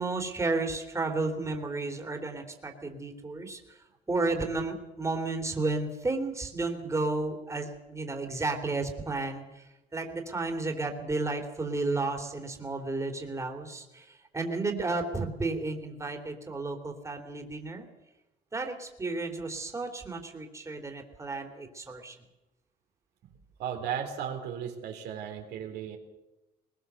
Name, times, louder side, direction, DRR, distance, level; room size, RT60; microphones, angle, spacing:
voice 1, 0.0-3.8 4.1-9.7 9.9-17.8 18.5-22.2, right 3 dB, 15° right, 3 dB, 3.2 m, -32 dB
voice 2, 23.6-26.0, right 8 dB, 80° right, 3 dB, 3.8 m, -35 dB
21.0 x 20.5 x 6.9 m, 0.98 s
cardioid pair, 110°, 17 cm